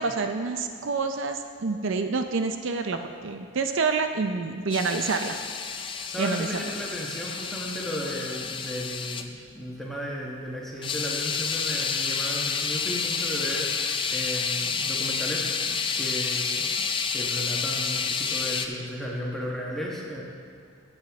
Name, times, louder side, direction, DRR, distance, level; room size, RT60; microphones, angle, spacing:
voice 1, 0.0-5.4 5.7-5.8 6.2-6.6, right 4 dB, 65° right, 6 dB, 0.5 m, -28 dB
sound 1, 4.7-9.2 10.8-18.7, left 5 dB, 25° left, 0.3 m, -29 dB
voice 2, 6.0-16.8 17.1-20.2, equal, ahead, -4 dB, 1.2 m, -35 dB
13.5 x 7.7 x 3.6 m, 2.3 s
head